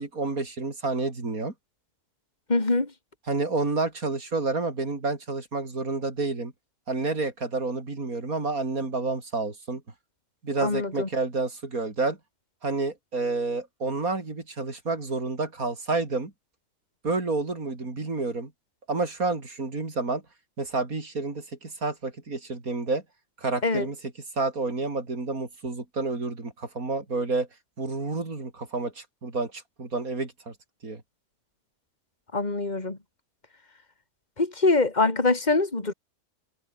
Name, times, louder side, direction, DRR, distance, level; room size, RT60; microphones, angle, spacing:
voice 1, 0.0-1.5 3.3-6.5 6.9-9.8 10.4-12.2 12.6-16.3 17.0-18.5 18.9-20.2 20.6-23.0 23.4-24.0 24.4-27.5 27.8-30.5 30.8-31.0, right 3 dB, 65° right, 4.5 m, -29 dB
voice 2, 2.5-2.9 10.6-11.1 23.6-23.9 32.3-33.0 34.4-35.9, left 3 dB, 30° left, 3.1 m, -24 dB
omnidirectional pair, 1.6 m